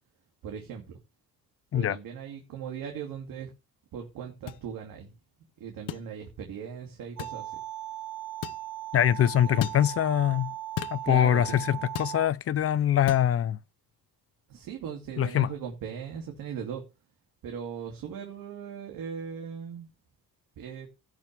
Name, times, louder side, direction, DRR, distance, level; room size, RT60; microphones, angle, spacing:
voice 1, 0.4-1.0 1.7-3.5 3.9-5.1 5.6-7.6 9.5-9.6 11.0-11.8 14.5-16.8 17.4-19.9 20.6-20.9, right 7 dB, 80° right, 2.6 m, -38 dB
sound 1, 4.5-4.6 5.9-6.1 7.2-7.4 8.4-8.6 9.6-9.8 10.8-11.0 12.0-12.2 13.1-13.3, left 13 dB, 70° left, 0.8 m, -34 dB
sound 2, 7.2-12.3, right 14 dB, 60° right, 2.1 m, -38 dB
voice 2, 8.9-10.5 10.9-13.6 15.2-15.5, left 10 dB, 45° left, 0.5 m, -24 dB
17.0 x 6.3 x 3.4 m
cardioid pair, 160°, 34 cm